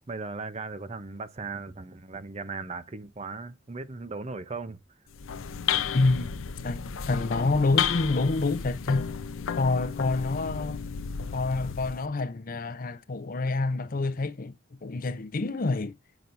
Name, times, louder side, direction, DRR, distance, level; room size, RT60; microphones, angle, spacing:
voice 1, 0.1-4.8, right 4 dB, 35° right, 0.6 m, -37 dB
sound 1, 5.1-12.1, left 7 dB, 90° left, 0.6 m, -32 dB
voice 2, 5.9-6.3 6.6-9.1 9.6-10.8 11.3-14.5 14.8-15.9, left 3 dB, 45° left, 0.6 m, -27 dB
6.9 x 6.0 x 2.5 m
head